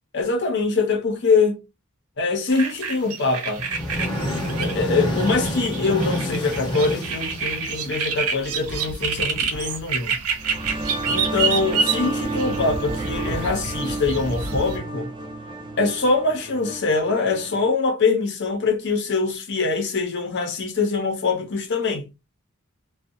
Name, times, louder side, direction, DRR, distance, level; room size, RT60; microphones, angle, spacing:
voice 1, 0.1-1.6 2.2-3.6 4.5-10.2 11.1-15.1 15.8-22.1, left 4 dB, 50° left, 0.7 m, -23 dB
sound 1, 2.5-14.8, right 5 dB, 80° right, 0.5 m, -28 dB
sound 2, 3.6-8.1, left 1 dB, 20° left, 0.8 m, -28 dB
sound 3, 10.4-17.7, right 2 dB, 20° right, 0.4 m, -31 dB
2.5 x 2.3 x 2.6 m
head